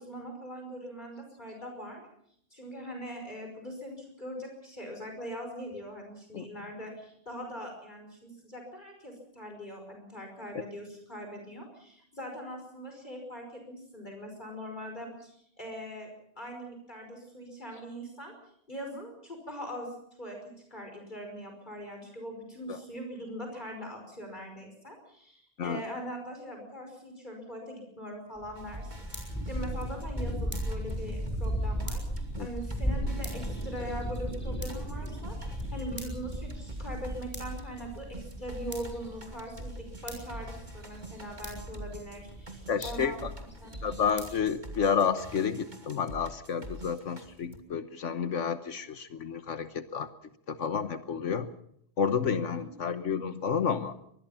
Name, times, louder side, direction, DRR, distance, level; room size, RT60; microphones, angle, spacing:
voice 1, 0.0-2.0 2.5-16.1 16.4-18.3 18.7-43.2 43.6-43.7 52.5-52.8, equal, 40° left, 3 dB, 5.5 m, -41 dB
sound 1, 28.4-44.4, equal, 10° left, 7.3 m, -37 dB
sound 2, 28.6-36.0 36.3-47.6, right 1 dB, 35° right, 3.0 m, -45 dB
voice 2, 42.7-43.3 43.8-50.1 50.5-51.5 52.0-54.0, left 6 dB, 75° left, 10 dB, 1.4 m, -30 dB
24.0 x 21.0 x 5.7 m, 0.70 s
omnidirectional pair, 1.3 m